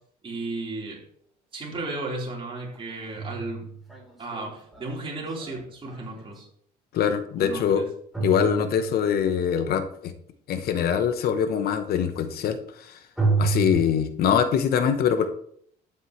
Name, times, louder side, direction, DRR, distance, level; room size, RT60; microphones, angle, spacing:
voice 1, 0.2-1.0 1.5-3.7 4.2-6.5 7.4-7.9, right 2 dB, 30° right, -3 dB, 4.2 m, -34 dB
sound 1, 2.8-6.4 8.1-9.3 13.2-13.8, right 4 dB, ahead, 3.8 m, -29 dB
voice 2, 6.9-7.8 8.2-10.1 10.5-13.0 13.4-15.3, left 8 dB, 65° left, 9 dB, 1.0 m, -23 dB
11.5 x 9.0 x 3.2 m, 0.66 s
cardioid pair, 110°, 17 cm